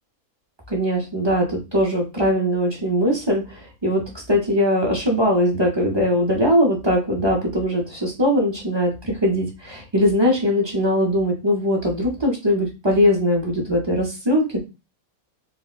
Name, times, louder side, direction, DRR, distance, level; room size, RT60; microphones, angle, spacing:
voice 1, 0.7-14.6, equal, 35° right, -1 dB, 0.4 m, -21 dB
3.9 x 2.0 x 2.4 m, 0.28 s
omnidirectional pair, 1.6 m